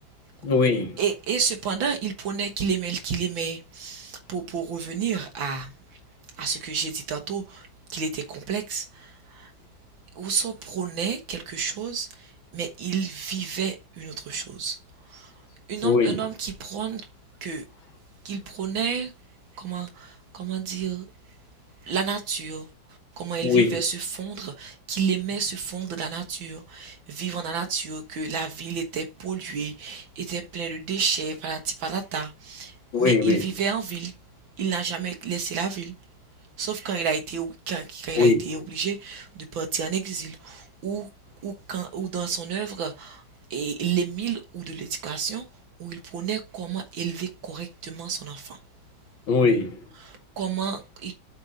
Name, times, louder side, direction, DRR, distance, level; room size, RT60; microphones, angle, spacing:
voice 1, 0.4-0.9 15.8-16.2 23.4-23.8 32.9-33.4 38.2-38.4 49.3-49.8, left 4 dB, 75° left, 2.9 m, -20 dB
voice 2, 1.0-6.0 6.4-9.5 10.2-15.4 15.7-17.1 17.4-17.7 18.3-19.1 19.5-21.1 21.8-22.7 23.2-34.1 34.6-35.9 36.6-41.1 41.4-43.2 43.5-45.5 45.8-48.6 50.0-51.1, right 6 dB, 75° right, 2.0 m, -30 dB
7.8 x 4.5 x 5.1 m
omnidirectional pair, 2.2 m